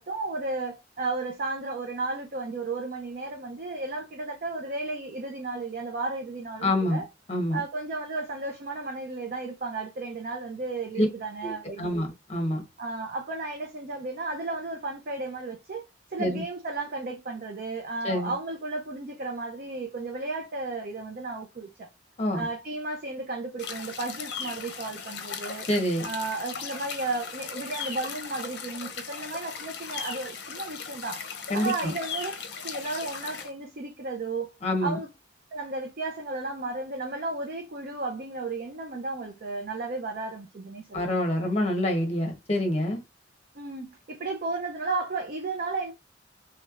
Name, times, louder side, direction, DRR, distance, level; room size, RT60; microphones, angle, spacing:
voice 1, 0.0-7.0 7.5-12.1 12.8-15.8 16.1-21.9 22.3-25.7 26.0-31.2 31.5-32.3 32.6-34.5 34.8-35.1 35.5-41.2 43.5-45.9, right 3 dB, 50° right, 0.5 m, -34 dB
voice 2, 6.6-7.0 7.3-7.6 11.0-11.1 11.4-12.6 16.2-16.4 18.0-18.3 22.2-22.5 25.7-26.0 31.5-31.9 34.6-35.0 40.9-43.0, left 1 dB, 35° left, 0.9 m, -26 dB
sound 1, 23.6-33.5, left 6 dB, 60° left, 0.6 m, -38 dB
3.1 x 3.1 x 2.4 m
head